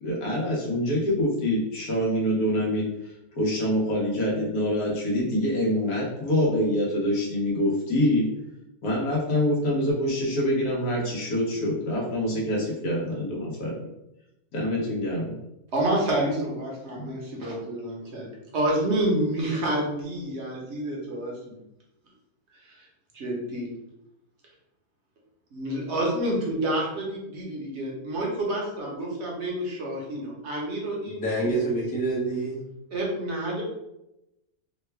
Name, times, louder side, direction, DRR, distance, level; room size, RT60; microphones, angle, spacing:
voice 1, 0.0-2.9 3.4-8.3 8.8-13.8 14.5-15.3, left 1 dB, 80° left, -4 dB, 1.5 m, -25 dB
voice 2, 15.7-21.6 22.7-22.8 23.1-23.7 25.5-31.5 32.9-33.6, right 1 dB, 50° right, -3 dB, 1.1 m, -28 dB
voice 3, 31.1-32.6, right 2 dB, 10° left, -5 dB, 0.5 m, -27 dB
3.7 x 2.2 x 3.3 m, 0.88 s
omnidirectional pair, 1.6 m